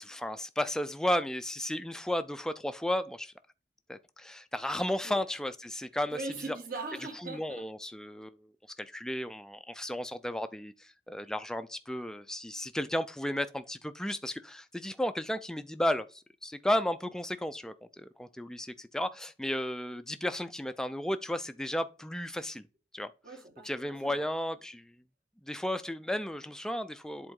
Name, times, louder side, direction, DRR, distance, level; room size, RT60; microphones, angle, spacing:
voice 1, 0.0-3.3 3.9-6.2 6.5-6.6 7.2-8.4 8.8-22.6 22.9-23.1 23.6-24.9 25.5-27.3, left 1 dB, 5° left, 0.3 m, -34 dB
voice 2, 6.1-7.7 23.2-24.3, right 3 dB, 50° right, 1.7 m, -41 dB
7.9 x 3.8 x 3.7 m
head